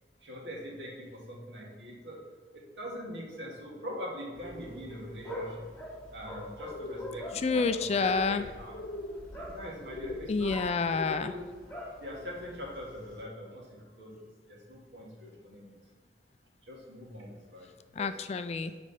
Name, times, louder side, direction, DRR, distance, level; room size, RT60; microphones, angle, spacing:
voice 1, 0.2-2.2 2.5-5.7 6.1-8.8 9.4-10.6 11.1-11.6 12.0-14.2 14.5-15.8 16.6-17.7 18.0-18.1, equal, 75° right, -3 dB, 2.0 m, -43 dB
sound 1, 4.3-13.2, equal, 10° left, 1.9 m, -44 dB
sound 2, 6.7-7.2 7.9-8.4 8.7-9.2 9.9-10.3 10.8-11.4, left 3 dB, 85° left, 0.8 m, -40 dB
voice 2, 7.4-8.5 10.3-11.3 18.0-18.7, left 4 dB, 35° left, 10 dB, 0.3 m, -28 dB
7.5 x 5.1 x 3.4 m, 1.5 s
head